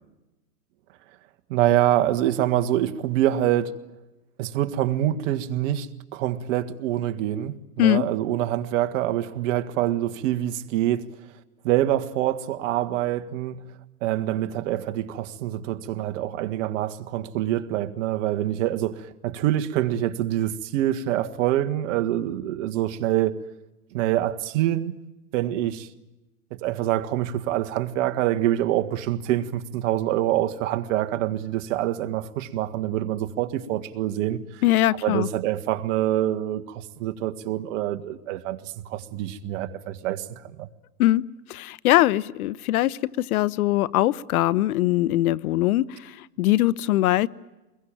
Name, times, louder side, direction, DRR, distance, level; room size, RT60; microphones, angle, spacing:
voice 1, 1.5-3.7 4.4-11.1 11.6-13.6 14.0-23.4 23.9-24.9 25.3-25.9 26.5-34.6 35.0-40.2 40.6-40.7, right 13 dB, 55° right, 1.7 m, -25 dB
voice 2, 34.6-35.3 41.0-41.2 41.5-47.3, left 15 dB, 65° left, 0.9 m, -22 dB
25.5 x 21.5 x 8.9 m
hypercardioid pair, 125°, 46 cm